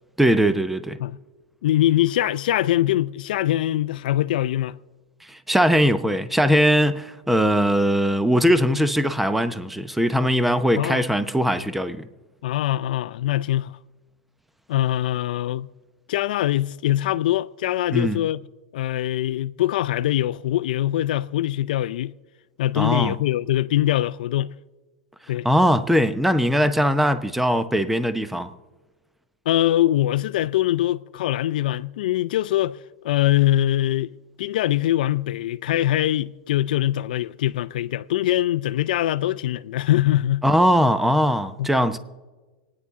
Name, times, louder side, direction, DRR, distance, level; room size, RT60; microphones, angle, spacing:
voice 1, 0.2-1.0 5.3-12.1 17.9-18.2 22.8-23.1 25.4-28.5 40.4-42.0, equal, 5° right, 0.8 m, -20 dB
voice 2, 1.6-4.8 10.8-11.1 12.4-13.7 14.7-15.7 16.1-18.4 18.7-22.1 22.6-24.5 25.3-25.5 29.5-32.8 33.0-34.1 34.4-40.4 41.6-41.7, left 13 dB, 75° left, 0.5 m, -23 dB
26.0 x 9.7 x 3.7 m
supercardioid pair, 130°, 5 cm